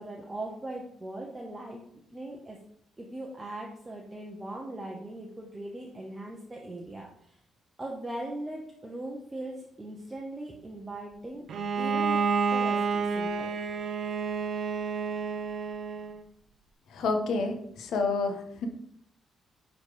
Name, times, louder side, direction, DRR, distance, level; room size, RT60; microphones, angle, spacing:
voice 1, 0.0-1.8 2.1-2.6 3.0-7.4 7.8-11.5 11.7-13.5, right 1 dB, 15° right, -1 dB, 0.9 m, -40 dB
Bowed string instrument, 11.5-16.2, right 5 dB, 45° right, 0.7 m, -29 dB
voice 2, 16.9-18.7, left 3 dB, 60° left, 5 dB, 1.3 m, -29 dB
9.9 x 4.1 x 5.1 m, 0.70 s
cardioid pair, 180°, 0 cm